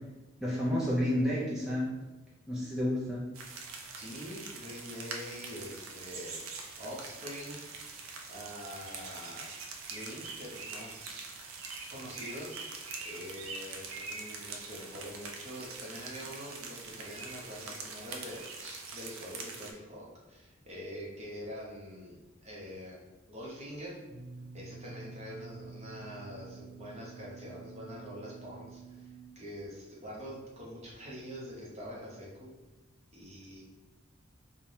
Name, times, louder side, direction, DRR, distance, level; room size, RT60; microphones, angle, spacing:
voice 1, 0.4-1.9 2.5-3.2, equal, 5° right, -8 dB, 0.4 m, -30 dB
sound 1, 3.3-19.7, right 4 dB, 70° right, 0.4 m, -44 dB
voice 2, 4.0-7.8 8.3-9.5 9.9-11.3 11.9-12.6 13.0-23.0 23.3-24.0 24.5-32.5 33.1-33.6, equal, 30° right, -4 dB, 0.7 m, -45 dB
sound 2, 24.1-29.3, right 4 dB, 30° left, 1.2 m, -49 dB
3.2 x 2.0 x 2.7 m, 1.1 s
head